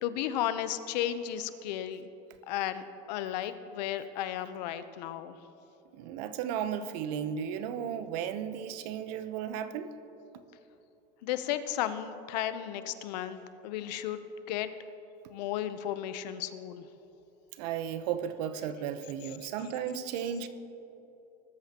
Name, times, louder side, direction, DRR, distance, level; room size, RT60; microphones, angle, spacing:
voice 1, 0.0-2.0 2.5-2.8 3.1-5.4 11.2-14.7 15.3-16.9, left 11 dB, 80° left, 12 dB, 0.8 m, -34 dB
voice 2, 5.9-9.9 17.6-20.5, right 8 dB, 75° right, 11 dB, 0.9 m, -34 dB
20.0 x 12.5 x 2.9 m, 3.0 s
supercardioid pair, 120°, 21 cm